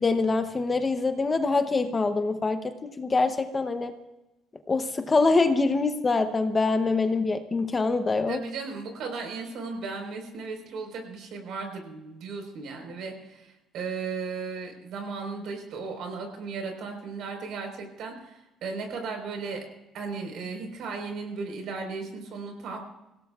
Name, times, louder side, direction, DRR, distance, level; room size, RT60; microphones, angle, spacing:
voice 1, 0.0-3.9 4.7-8.4, left 3 dB, 20° left, 8 dB, 0.7 m, -24 dB
voice 2, 8.3-19.6 19.9-22.8, right 4 dB, 65° right, 4 dB, 4.2 m, -36 dB
26.0 x 17.0 x 2.4 m, 0.96 s
cardioid pair, 155°, 0 cm